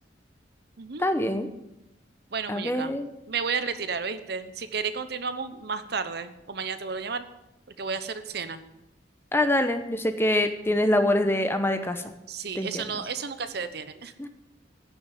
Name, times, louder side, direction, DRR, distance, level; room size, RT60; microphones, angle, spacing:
voice 1, 1.0-1.5 2.5-3.1 9.3-12.0 12.6-13.0 14.2-14.3, left 1 dB, 15° left, 8 dB, 0.9 m, -25 dB
voice 2, 2.3-2.9 3.3-7.2 7.8-8.6 12.3-14.1, right 5 dB, 60° right, 11 dB, 0.9 m, -32 dB
15.5 x 6.9 x 7.7 m, 0.89 s
head